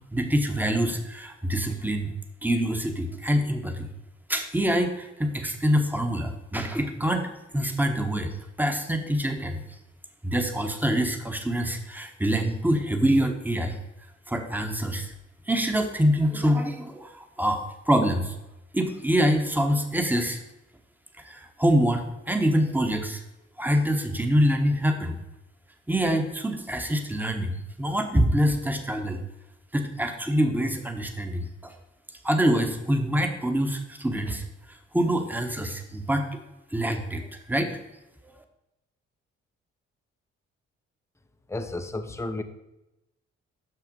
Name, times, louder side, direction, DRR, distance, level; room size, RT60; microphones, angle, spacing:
voice 1, 0.1-2.1 2.4-3.9 4.3-7.3 7.5-8.3 8.6-9.6 10.2-13.8 14.3-15.1 15.5-18.4 18.7-20.4 21.2-23.2 23.6-25.2 25.9-29.2 29.7-31.7 32.2-34.4 34.7-36.3 36.7-37.8, equal, 5° right, 5 dB, 1.2 m, -25 dB
voice 2, 41.5-42.4, left 2 dB, 10° left, 7 dB, 0.8 m, -32 dB
6.0 x 5.7 x 5.4 m, 0.94 s
supercardioid pair, 50°, 30 cm